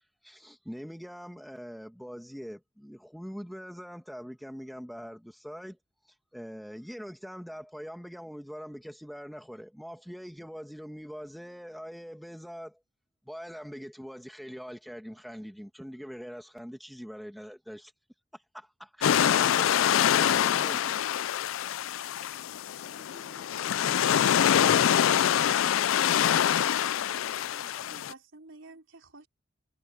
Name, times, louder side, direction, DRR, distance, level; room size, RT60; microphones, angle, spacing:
voice 1, 0.0-5.8 6.1-12.8 13.3-17.9 18.3-20.9, equal, ahead, 1.8 m, -43 dB
sound 1, 19.0-28.1, left 9 dB, 80° left, 0.4 m, -25 dB
voice 2, 22.8-24.4 26.7-28.1, right 1 dB, 20° right, 2.2 m, -57 dB
voice 3, 27.6-29.3, right 3 dB, 75° right, 3.8 m, -50 dB
head